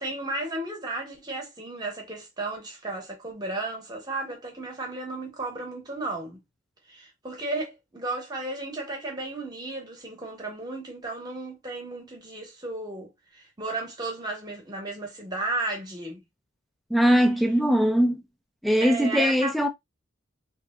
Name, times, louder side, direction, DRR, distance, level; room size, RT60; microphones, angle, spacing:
voice 1, 0.0-6.4 6.9-16.2 18.8-19.5, right 2 dB, 20° right, 0.9 m, -34 dB
voice 2, 16.9-18.2 18.6-19.7, equal, ahead, 0.4 m, -21 dB
3.0 x 2.7 x 2.3 m
head